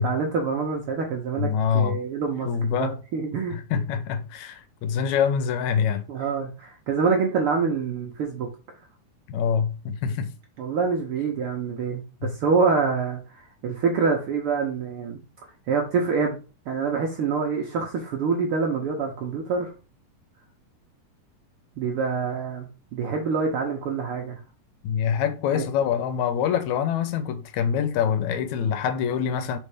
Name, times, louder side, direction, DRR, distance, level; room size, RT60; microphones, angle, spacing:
voice 1, 0.0-3.6 6.1-8.5 10.6-15.2 15.7-16.4 16.7-19.7 21.8-24.4 25.5-25.6, right 5 dB, 75° right, 1.3 m, -26 dB
voice 2, 1.4-2.0 2.5-3.0 3.5-6.0 9.3-10.3 12.2-12.3 24.8-29.6, left 7 dB, 75° left, 1.9 m, -25 dB
5.4 x 3.8 x 4.9 m
omnidirectional pair, 3.7 m